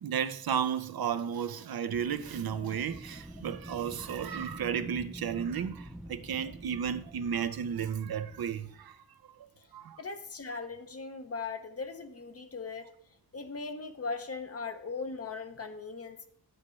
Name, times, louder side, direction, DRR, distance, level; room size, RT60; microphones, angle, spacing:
voice 1, 0.0-9.0 9.4-9.5 9.7-10.0, right 8 dB, 70° right, 0.7 m, -33 dB
Wind, 1.9-8.9, right 1 dB, ahead, 0.4 m, -47 dB
voice 2, 10.0-16.3, left 4 dB, 40° left, 0.8 m, -39 dB
9.9 x 8.0 x 3.2 m
wide cardioid pair, 105°, 38 cm